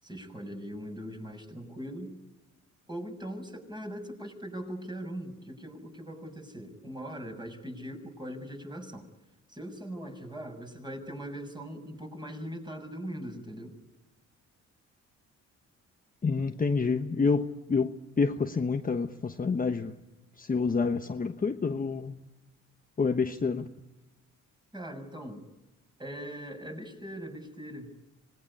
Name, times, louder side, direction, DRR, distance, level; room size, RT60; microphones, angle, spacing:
voice 1, 0.0-2.2 2.9-9.1 9.5-13.7 24.7-25.5 26.0-27.9, equal, 15° right, 6.6 m, -40 dB
voice 2, 16.2-20.0 20.4-22.2 23.0-23.7, left 4 dB, 30° left, 1.2 m, -28 dB
26.0 x 20.0 x 9.9 m
cardioid pair, 90°, 30 cm